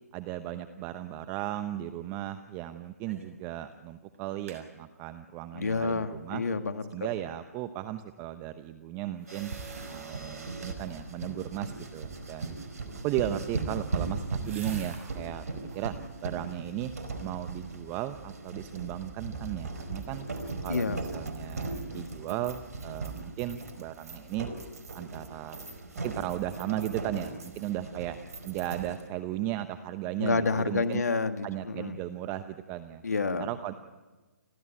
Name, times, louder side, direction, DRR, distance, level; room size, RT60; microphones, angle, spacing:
voice 1, 0.1-6.4 6.9-9.5 9.9-12.5 13.0-15.5 15.7-15.9 16.2-16.9 17.2-20.2 20.6-24.5 24.9-25.6 26.0-28.2 28.4-31.0 31.4-33.0 33.4-33.7, right 13 dB, 25° right, 10 dB, 0.8 m, -36 dB
sound 1, 3.1-3.4 3.7-3.8 4.1-4.6 9.1-10.4 10.7-11.3 13.2-15.2 15.6-16.0 16.5-17.1 17.5-17.6, right 4 dB, 60° right, 6.7 m, -51 dB
voice 2, 5.5-6.8 20.7-21.0 21.9-22.1 30.2-32.0 33.0-33.5, left 4 dB, 80° left, 9 dB, 1.8 m, -29 dB
sound 2, 9.3-29.1, right 3 dB, 75° right, 4.7 m, -38 dB
29.5 x 13.5 x 8.8 m, 1.2 s
hypercardioid pair, 140°, 9 cm